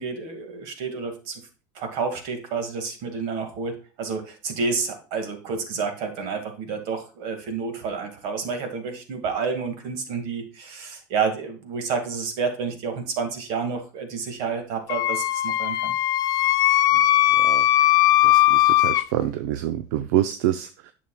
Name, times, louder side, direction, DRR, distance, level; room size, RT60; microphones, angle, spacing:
voice 1, 0.0-1.4 1.8-15.9, right 5 dB, 60° right, 5 dB, 1.9 m, -29 dB
Wind instrument woodwind instrument, 14.9-19.0, left 14 dB, 40° left, 0.4 m, -19 dB
voice 2, 18.2-20.9, right 12 dB, 75° right, 10 dB, 0.6 m, -26 dB
9.4 x 6.8 x 2.3 m, 0.37 s
supercardioid pair, 140°, 10 cm